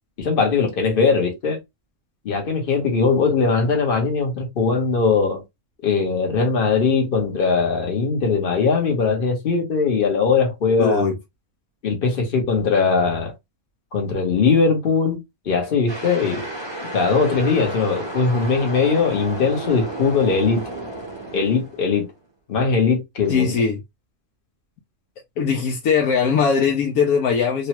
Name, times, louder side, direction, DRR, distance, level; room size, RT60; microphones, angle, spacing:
voice 1, 0.2-1.6 2.2-5.4 5.8-11.0 11.8-13.3 13.9-15.2 15.5-16.4 16.9-20.6 21.3-22.1 22.5-23.5, left 5 dB, 45° left, 1.1 m, -20 dB
voice 2, 10.8-11.2 23.3-23.8 25.4-27.7, left 6 dB, 80° left, 1.1 m, -20 dB
sound 1, 15.9-22.2, right 1 dB, 25° right, 0.7 m, -32 dB
3.1 x 2.2 x 2.9 m
omnidirectional pair, 1.5 m